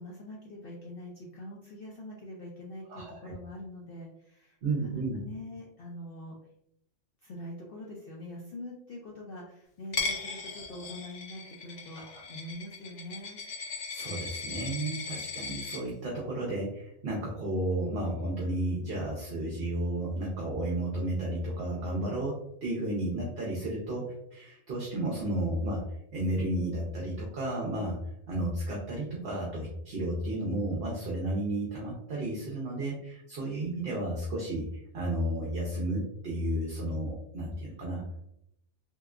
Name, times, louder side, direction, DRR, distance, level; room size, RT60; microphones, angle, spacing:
voice 1, 0.0-4.6 4.8-6.4 7.2-12.0 12.3-13.4, left 1 dB, 60° left, -3 dB, 0.6 m, -44 dB
voice 2, 2.9-3.3 4.6-5.2 12.0-12.2 13.9-25.8 26.1-28.0 28.3-34.7 34.9-38.0, right 1 dB, 55° right, -3 dB, 0.8 m, -32 dB
Coin (dropping), 9.9-15.8, left 4 dB, 80° left, 1.0 m, -37 dB
3.2 x 2.9 x 2.4 m, 0.75 s
omnidirectional pair, 1.4 m